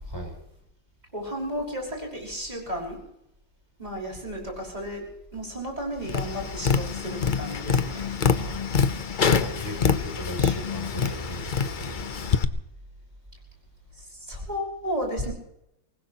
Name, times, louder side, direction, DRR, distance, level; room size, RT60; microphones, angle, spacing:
voice 1, 1.1-3.0 3.8-5.1 5.3-8.1 14.0-15.3, equal, 20° right, -2 dB, 6.2 m, -33 dB
Tap, 6.1-12.4, left 6 dB, 60° left, 0.5 m, -25 dB
voice 2, 8.3-8.8 9.1-12.4, equal, 10° left, 1 dB, 6.7 m, -37 dB
24.5 x 20.0 x 3.0 m, 0.82 s
omnidirectional pair, 2.1 m